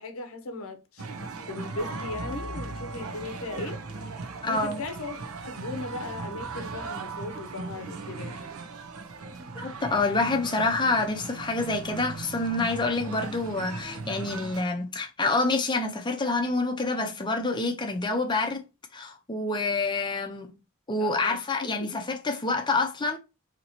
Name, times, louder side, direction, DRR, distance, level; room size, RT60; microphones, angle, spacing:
voice 1, 0.0-3.8 4.5-5.2 5.4-8.4 21.0-21.9, left 2 dB, 70° left, 0.7 m, -38 dB
sound 1, 1.0-14.6, right 4 dB, 75° right, 0.6 m, -38 dB
sound 2, 1.8-8.0 8.4-8.5, left 2 dB, 60° right, 1.2 m, -46 dB
voice 2, 4.4-4.8 9.5-18.6 18.9-20.5 20.9-23.2, left 3 dB, 20° left, 0.6 m, -27 dB
sound 3, 5.5-6.9 9.2-10.3 10.6-11.4 13.1-14.3, right 2 dB, 20° right, 0.9 m, -48 dB
2.9 x 2.7 x 4.3 m
head